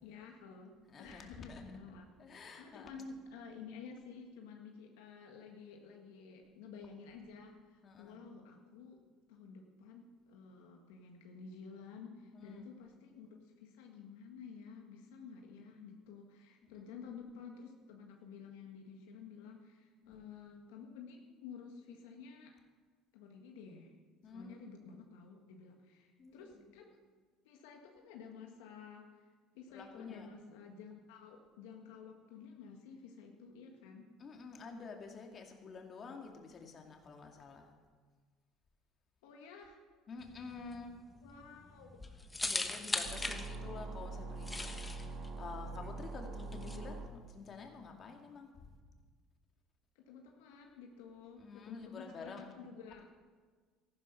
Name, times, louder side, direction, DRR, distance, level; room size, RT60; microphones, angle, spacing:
voice 1, 0.0-2.1 2.6-9.0 9.3-22.6 23.1-23.9 24.2-27.0 27.4-29.3 29.5-34.1 39.2-39.8 41.2-42.2 50.0-53.0, left 5 dB, 85° left, 2 dB, 1.7 m, -52 dB
voice 2, 0.9-1.6 2.2-2.9 7.8-8.2 12.3-12.7 16.6-16.9 20.0-20.2 24.2-24.7 26.2-26.6 29.7-30.3 34.2-37.7 40.1-41.0 42.4-48.8 51.4-52.5, left 4 dB, 40° left, 3 dB, 2.4 m, -49 dB
sound 1, 40.2-46.8, left 2 dB, 15° left, 1.3 m, -40 dB
sound 2, 43.0-47.1, right 3 dB, 65° right, 1.9 m, -44 dB
14.0 x 11.5 x 5.9 m, 1.5 s
supercardioid pair, 95°, 0 cm